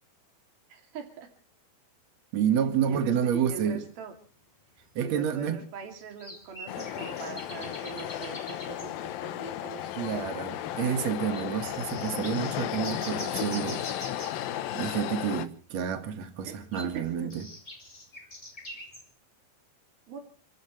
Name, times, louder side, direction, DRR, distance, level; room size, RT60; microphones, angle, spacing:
voice 1, 0.7-1.3 2.8-4.1 5.0-10.1 16.4-17.3 20.1-20.2, right 6 dB, 75° right, 4.7 m, -42 dB
voice 2, 2.3-3.8 5.0-5.6 9.9-13.9 14.7-17.5, right 8 dB, 55° right, 2.7 m, -29 dB
sound 1, 3.9-4.0 4.8-4.9 6.2-8.9 9.6-9.7 9.9-10.0 10.4-10.7 11.3-11.5 11.9-14.4 16.5-19.1, left 1 dB, 15° left, 2.7 m, -44 dB
sound 2, 6.7-15.5, left 12 dB, 75° left, 2.7 m, -34 dB
29.0 x 15.0 x 3.3 m
omnidirectional pair, 4.3 m